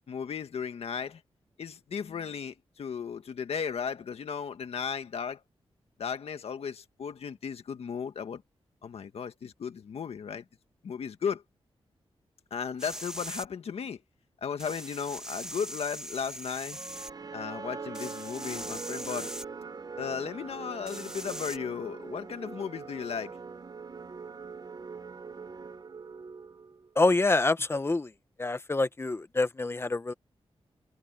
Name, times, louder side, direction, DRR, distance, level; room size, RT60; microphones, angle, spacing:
voice 1, 0.1-1.2 1.6-5.4 6.0-8.4 8.8-10.5 10.8-11.4 12.5-14.0 14.4-16.8 17.3-19.3 20.0-23.4, left 6 dB, 80° left, 1.8 m, -35 dB
sound 1, 12.8-13.5 14.6-17.1 17.9-19.4 20.9-21.6, right 1 dB, 5° right, 1.7 m, -41 dB
sound 2, 16.7-26.9, right 5 dB, 40° right, 0.8 m, -42 dB
voice 2, 26.9-28.1 28.4-30.1, left 2 dB, 25° left, 1.0 m, -26 dB
wide cardioid pair, 110°, 10 cm